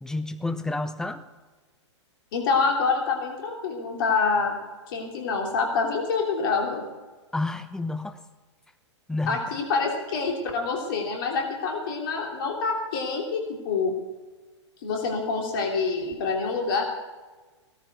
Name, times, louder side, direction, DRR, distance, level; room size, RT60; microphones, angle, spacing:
voice 1, 0.0-1.2 7.3-8.2 9.1-9.4, left 2 dB, 5° left, 9 dB, 0.8 m, -30 dB
voice 2, 2.3-4.6 4.9-6.8 9.3-13.9 14.8-16.8, left 4 dB, 45° left, 1 dB, 3.0 m, -26 dB
17.5 x 13.5 x 4.6 m, 1.3 s
figure-of-eight pair, 110°, 15 cm